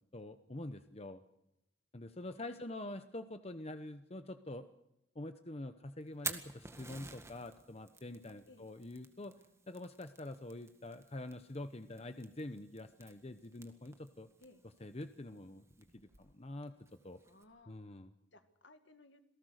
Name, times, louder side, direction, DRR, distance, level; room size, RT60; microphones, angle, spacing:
voice 1, 0.1-1.2 1.9-4.7 5.1-9.3 9.7-14.3 14.8-16.7 17.0-17.2 17.7-18.1, left 1 dB, 30° left, 9 dB, 0.9 m, -46 dB
voice 2, 2.2-2.9 8.5-8.7 14.4-14.6 17.2-17.8 18.3-19.3, left 2 dB, 70° left, 8 dB, 2.1 m, -61 dB
Fire, 6.0-17.4, right 4 dB, 15° right, 1.8 m, -51 dB
27.5 x 18.5 x 6.5 m, 0.86 s
head